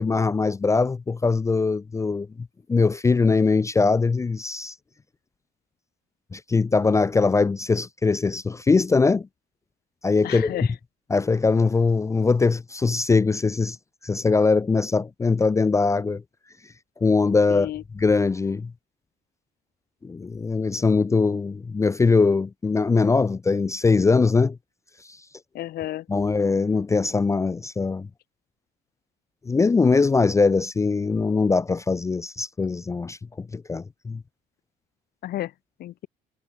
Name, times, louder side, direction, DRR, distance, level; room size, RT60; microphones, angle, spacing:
voice 1, 0.0-4.7 6.3-9.3 10.0-10.7 11.1-13.8 14.0-16.2 17.0-17.7 17.9-18.7 20.0-24.6 25.1-25.2 26.1-28.1 29.5-34.2, left 4 dB, 15° left, 0.4 m, -21 dB
voice 2, 10.2-10.7 17.5-17.8 25.5-26.1 35.2-35.5 35.8-36.1, left 13 dB, 65° left, 1.3 m, -32 dB
cardioid pair, 110°, 17 cm